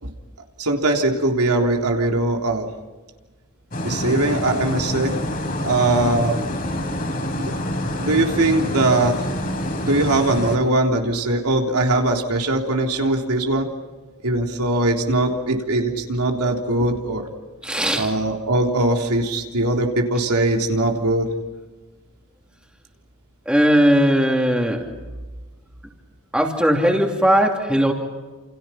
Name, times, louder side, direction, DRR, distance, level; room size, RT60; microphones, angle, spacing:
voice 1, 0.6-2.7 3.8-5.1 5.6-6.4 7.4-7.5 8.0-9.2 9.8-13.7 14.2-17.3 18.0-21.3, right 2 dB, 90° right, 2 dB, 3.6 m, -21 dB
sound 1, 3.7-10.6, left 1 dB, 40° left, 3.9 m, -26 dB
voice 2, 17.6-18.1 23.4-24.8 26.3-27.9, equal, 5° right, 1 dB, 3.0 m, -18 dB
29.0 x 29.0 x 5.8 m, 1.3 s
head